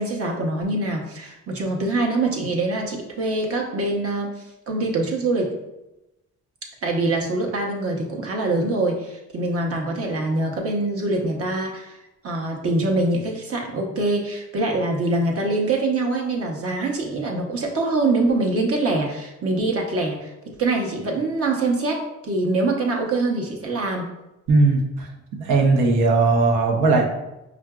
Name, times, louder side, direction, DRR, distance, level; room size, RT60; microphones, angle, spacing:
voice 1, 0.0-4.3 4.7-5.5 6.8-12.0 12.2-20.3 20.6-22.0 22.2-24.1, right 2 dB, 50° right, 0 dB, 0.8 m, -24 dB
voice 2, 24.5-25.1 25.4-27.0, right 3 dB, 85° right, 1 dB, 0.7 m, -18 dB
4.7 x 2.5 x 2.3 m, 0.95 s
cardioid pair, 90°, 30 cm